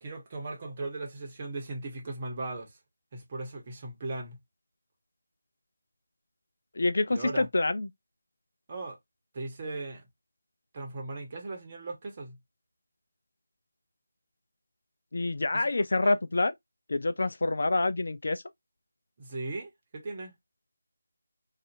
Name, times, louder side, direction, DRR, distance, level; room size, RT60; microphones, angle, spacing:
voice 1, 0.0-2.8 3.1-4.4 7.1-7.5 8.7-9.0 9.3-10.0 10.7-12.4 15.5-15.7 16.0-16.2 19.2-20.3, right 2 dB, 30° right, 0.9 m, -38 dB
voice 2, 6.8-7.9 15.1-16.5 16.9-18.4, left 2 dB, 60° left, 0.3 m, -27 dB
2.6 x 2.4 x 2.6 m
figure-of-eight pair, 160°, 0 cm